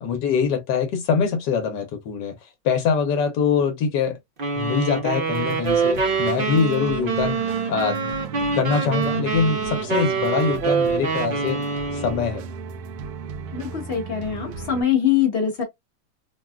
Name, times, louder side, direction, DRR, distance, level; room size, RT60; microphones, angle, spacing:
voice 1, 0.0-2.3 2.6-4.2 4.5-8.1 8.5-11.6 11.9-12.4, left 6 dB, 80° left, 1.3 m, -23 dB
sound 1, 4.4-12.3, right 5 dB, 45° right, 0.7 m, -25 dB
sound 2, 5.3-14.8, right 5 dB, 75° right, 1.0 m, -36 dB
voice 2, 13.5-15.6, left 9 dB, 45° left, 0.9 m, -23 dB
3.5 x 2.2 x 2.3 m
omnidirectional pair, 1.8 m